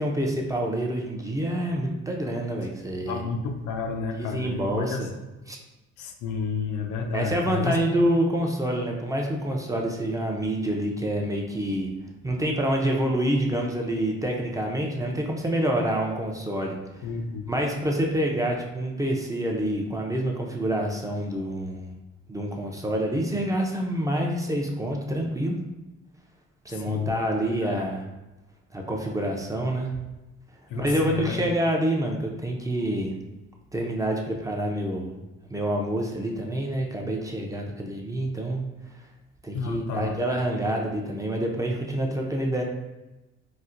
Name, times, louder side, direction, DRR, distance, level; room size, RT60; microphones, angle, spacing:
voice 1, 0.0-3.2 4.1-5.1 5.5-5.6 7.1-11.9 12.2-17.1 17.5-21.9 22.3-25.6 26.6-28.1 28.7-29.9 30.8-33.1 33.7-35.2 35.5-38.6 39.4-42.6, right 1 dB, 10° right, 0 dB, 0.5 m, -27 dB
voice 2, 3.1-5.0 6.0-7.8 15.0-15.2 17.0-17.5 26.7-27.1 27.5-27.8 30.7-31.4 39.5-40.1, left 5 dB, 85° left, 4 dB, 0.5 m, -31 dB
4.1 x 2.1 x 2.5 m, 1.1 s
cardioid pair, 90°, 30 cm